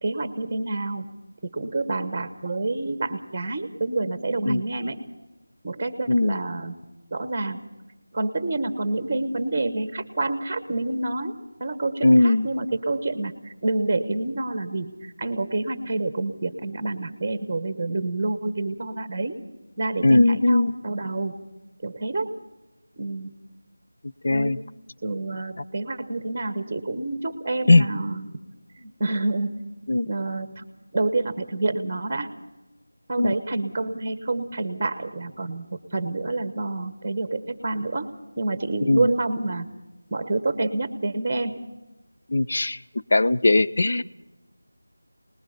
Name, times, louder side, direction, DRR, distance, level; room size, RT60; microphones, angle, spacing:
voice 1, 0.0-1.1 1.5-5.0 5.6-6.8 7.1-7.6 8.1-11.3 11.6-19.3 19.8-21.4 21.8-22.3 23.0-23.3 24.3-24.6 25.0-28.3 28.8-29.5 30.1-30.6 30.9-32.3 33.1-38.1 38.4-39.7 40.1-41.5, right 2 dB, 15° right, 10 dB, 1.2 m, -28 dB
voice 2, 6.1-6.4 12.0-12.5 20.0-20.7 24.2-24.6 27.7-27.8 29.9-30.1 33.2-33.4 38.9-39.1 42.3-42.8 43.1-44.0, left 2 dB, 45° left, 12 dB, 0.6 m, -19 dB
25.5 x 20.0 x 5.3 m, 1.0 s
figure-of-eight pair, 175°, 0 cm